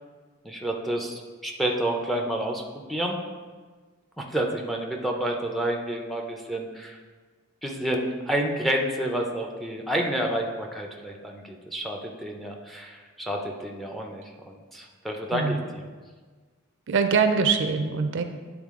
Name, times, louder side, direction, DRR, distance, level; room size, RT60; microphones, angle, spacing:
voice 1, 0.4-3.2 4.2-7.0 7.6-15.8, right 1 dB, ahead, 1 dB, 0.5 m, -29 dB
voice 2, 15.3-15.6 16.9-18.2, right 5 dB, 60° right, 7 dB, 0.4 m, -23 dB
9.2 x 3.7 x 3.6 m, 1.4 s
head